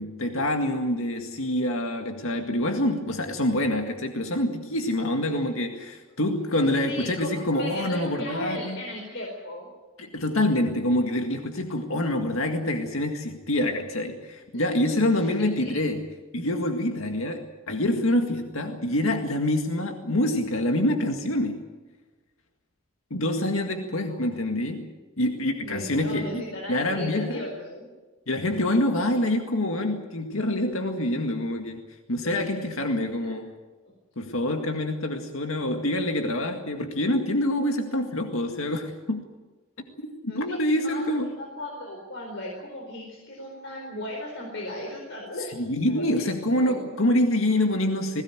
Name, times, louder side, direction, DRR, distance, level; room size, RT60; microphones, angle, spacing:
voice 1, 0.0-8.8 10.0-16.0 16.3-21.6 23.1-27.5 28.3-31.8 32.1-33.5 34.2-39.2 40.0-41.3 45.6-48.2, left 1 dB, 80° left, 4 dB, 2.0 m, -26 dB
voice 2, 6.9-9.7 14.5-14.7 15.2-15.7 23.7-24.2 25.6-27.9 32.2-32.4 33.1-33.3 33.8-33.9 40.3-46.3 46.5-46.8, left 1 dB, 60° left, -1 dB, 4.6 m, -37 dB
21.0 x 17.5 x 9.1 m, 1.2 s
head